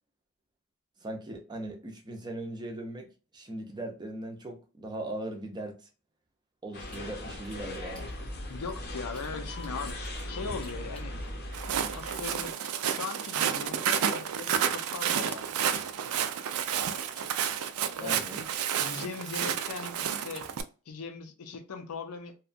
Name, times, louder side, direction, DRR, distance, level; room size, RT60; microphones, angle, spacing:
voice 1, 1.0-3.1 3.3-5.9 6.6-8.1 18.0-18.4, right 1 dB, 20° right, 0.5 m, -39 dB
sound 1, 6.7-12.5, left 1 dB, 45° left, 0.6 m, -39 dB
sound 2, 6.9-9.3 9.6-11.5 11.9-14.6 15.0-18.3 18.5-20.6, right 1 dB, 5° left, 0.9 m, -54 dB
voice 2, 8.5-10.0 10.3-11.1 11.9-12.5 12.8-15.5 16.0-16.1 18.0-18.5 18.8-20.5 20.9-22.4, left 4 dB, 85° left, 0.6 m, -39 dB
Walk footsteps, 11.5-20.6, right 8 dB, 75° right, 0.3 m, -30 dB
2.8 x 2.2 x 2.5 m
head